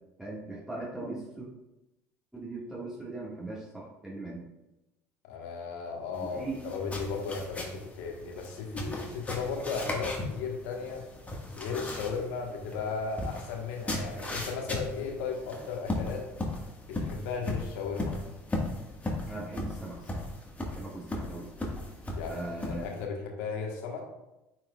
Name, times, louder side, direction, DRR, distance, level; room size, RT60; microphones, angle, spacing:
voice 1, 0.2-1.5 2.3-4.4 6.2-6.6 19.3-20.2 20.7-21.5 22.2-23.0, right 2 dB, 5° right, -7 dB, 1.6 m, -39 dB
voice 2, 5.2-11.0 11.5-16.3 16.9-18.2 22.1-22.4 22.8-24.0, left 5 dB, 80° left, 1 dB, 1.3 m, -35 dB
sound 1, 6.1-23.0, left 1 dB, 20° left, 1.5 m, -37 dB
9.2 x 4.6 x 2.3 m, 0.96 s
hypercardioid pair, 80°, 8 cm